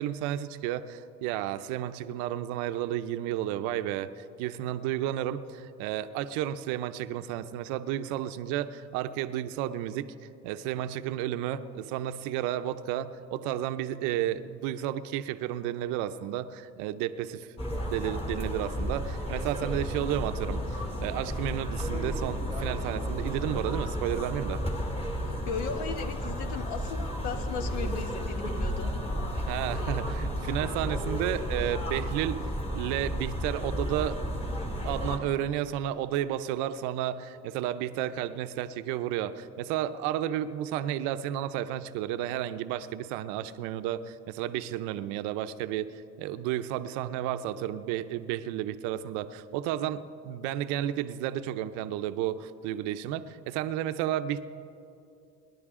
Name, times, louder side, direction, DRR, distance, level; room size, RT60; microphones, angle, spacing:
voice 1, 0.0-10.1 10.4-24.6 29.5-32.4 32.7-34.2 34.8-45.9 46.2-54.4, right 12 dB, 90° right, 12 dB, 0.6 m, -32 dB
sound 1, 17.6-35.2, equal, 20° left, 2.3 m, -32 dB
voice 2, 25.3-28.9, left 6 dB, 80° left, 8 dB, 1.2 m, -36 dB
23.5 x 10.5 x 3.7 m, 2.6 s
cardioid pair, 110°, 29 cm